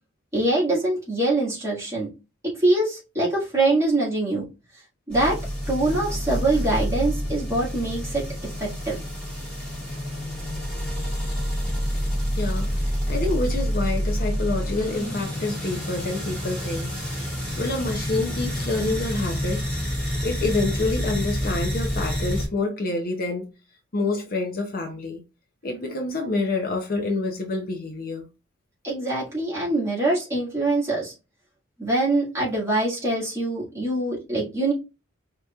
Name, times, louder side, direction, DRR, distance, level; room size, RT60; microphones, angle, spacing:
voice 1, 0.3-2.1 2.6-4.4 5.1-5.4 5.7-8.2 8.6-9.0 28.8-31.1 31.8-34.7, right 2 dB, 15° right, 1.6 m, -24 dB
sound 1, 5.1-22.5, equal, 5° left, 1.6 m, -28 dB
voice 2, 12.3-17.3 17.6-23.5 23.9-25.2 25.6-28.2, left 2 dB, 40° left, 0.6 m, -28 dB
4.9 x 2.8 x 2.3 m
head